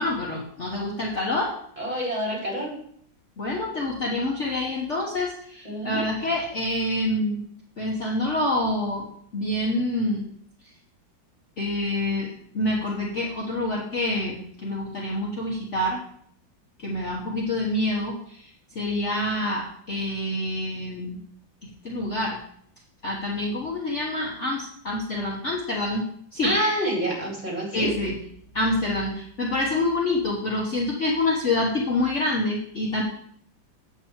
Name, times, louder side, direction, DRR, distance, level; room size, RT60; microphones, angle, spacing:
voice 1, 0.0-1.5 3.4-7.4 7.8-10.2 11.6-16.0 16.8-21.2 21.6-22.4 23.0-26.5 27.7-28.2 28.5-33.0, left 1 dB, 45° left, -3 dB, 1.4 m, -27 dB
voice 2, 1.8-2.7 5.6-6.0 26.4-27.9, right 1 dB, 20° right, -4 dB, 3.5 m, -27 dB
8.2 x 4.5 x 7.2 m, 0.64 s
omnidirectional pair, 2.1 m